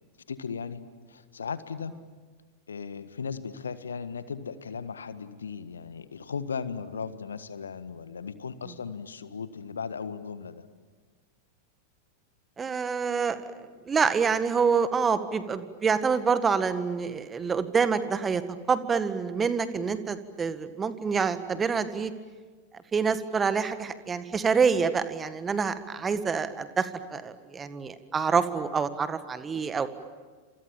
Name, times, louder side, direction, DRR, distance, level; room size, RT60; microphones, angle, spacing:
voice 1, 0.3-0.8 1.1-1.9 2.7-10.6, left 6 dB, 70° left, 13 dB, 1.5 m, -37 dB
voice 2, 12.6-13.4 13.9-18.4 18.7-22.1 22.9-29.9, right 5 dB, 20° right, 12 dB, 1.8 m, -26 dB
29.5 x 27.0 x 7.3 m, 1.4 s
figure-of-eight pair, 90°, 0 cm